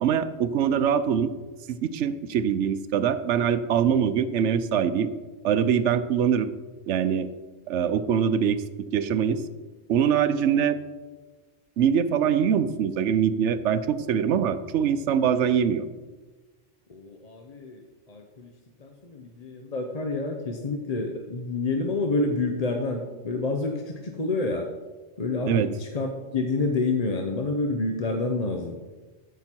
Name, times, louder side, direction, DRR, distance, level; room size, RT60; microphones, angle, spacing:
voice 1, 0.0-1.3 1.7-5.1 5.4-6.5 6.9-7.3 7.7-8.6 8.9-9.4 9.9-10.8 11.8-15.9 25.5-25.7, right 8 dB, 85° right, 12 dB, 1.0 m, -23 dB
voice 2, 16.9-17.8 18.1-18.5 18.8-24.7 25.2-28.8, left 3 dB, 40° left, 3 dB, 0.8 m, -28 dB
14.0 x 6.1 x 4.5 m, 1.2 s
omnidirectional pair, 1.2 m